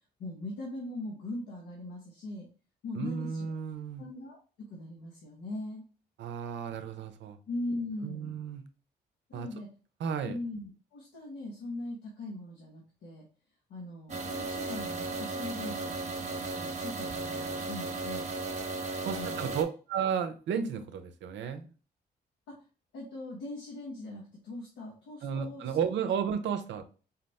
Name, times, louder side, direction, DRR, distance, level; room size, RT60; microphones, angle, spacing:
voice 1, 0.2-2.5 2.8-3.5 4.0-5.8 7.5-8.4 9.3-9.7 10.3-13.2 13.7-18.3 19.1-19.6 22.9-25.8, left 2 dB, 85° left, -2 dB, 1.1 m, -40 dB
voice 2, 2.9-4.1 6.2-7.4 8.0-8.7 9.3-9.5 10.0-10.4 19.0-21.7 25.2-26.8, right 7 dB, 85° right, 9 dB, 0.6 m, -33 dB
sound 1, 14.1-19.6, right 3 dB, 40° right, 0.9 m, -35 dB
4.1 x 2.1 x 4.1 m, 0.36 s
supercardioid pair, 60°, 18 cm